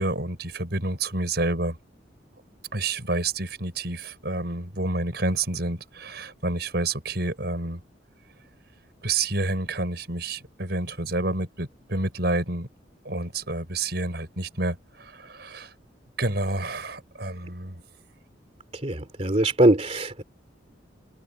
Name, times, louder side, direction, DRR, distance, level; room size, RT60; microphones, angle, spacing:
voice 1, 0.0-1.8 2.7-7.8 9.0-12.7 13.0-15.7 16.2-17.8, right 2 dB, 60° right, 6.5 m, -29 dB
voice 2, 18.8-20.2, right 1 dB, 35° right, 2.7 m, -21 dB
head